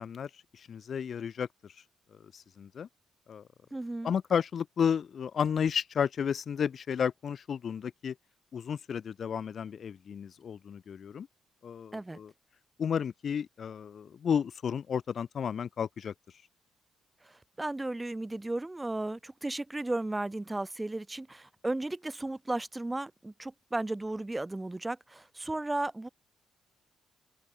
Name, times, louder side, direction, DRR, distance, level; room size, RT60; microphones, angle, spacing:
voice 1, 0.0-1.5 2.3-2.9 3.3-3.4 4.0-8.1 8.5-11.3 11.6-12.3 12.8-16.1, left 7 dB, 55° left, 0.9 m, -32 dB
voice 2, 3.7-4.1 11.9-12.2 17.2-17.3 17.6-26.1, right 2 dB, 15° right, 3.3 m, -35 dB
open air
cardioid pair, 90°, 0 cm